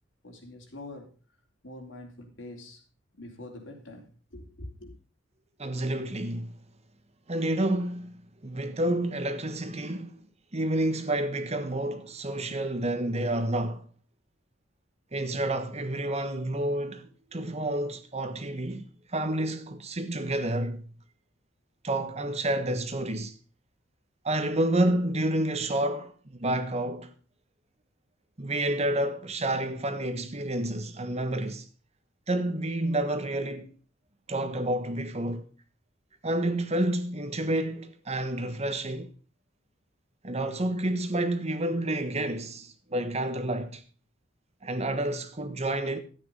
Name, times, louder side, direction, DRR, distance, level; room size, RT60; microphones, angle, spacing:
voice 1, 0.2-1.1 1.6-2.8 3.2-4.9, left 1 dB, 70° left, 3.3 m, -44 dB
voice 2, 5.6-6.6 7.3-10.2 10.5-13.9 15.1-18.8 19.1-20.9 21.8-23.4 24.2-27.1 28.4-31.7 32.3-33.7 34.3-35.5 36.2-39.1 40.2-43.8 44.6-46.0, right 1 dB, 35° right, 1.2 m, -29 dB
13.0 x 8.8 x 5.4 m
head